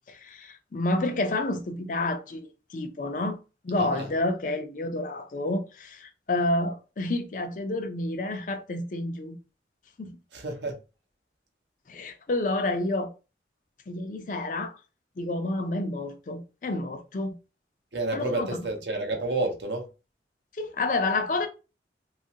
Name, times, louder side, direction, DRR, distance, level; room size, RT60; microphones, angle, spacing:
voice 1, 0.1-3.4 3.6-9.4 10.0-10.2 11.9-13.1 13.9-14.8 15.2-17.4 18.1-18.5 20.5-21.5, left 2 dB, 45° left, 0.4 m, -29 dB
voice 2, 10.3-10.8 17.9-19.9, right 2 dB, 75° right, 0.7 m, -30 dB
2.9 x 2.4 x 2.7 m
head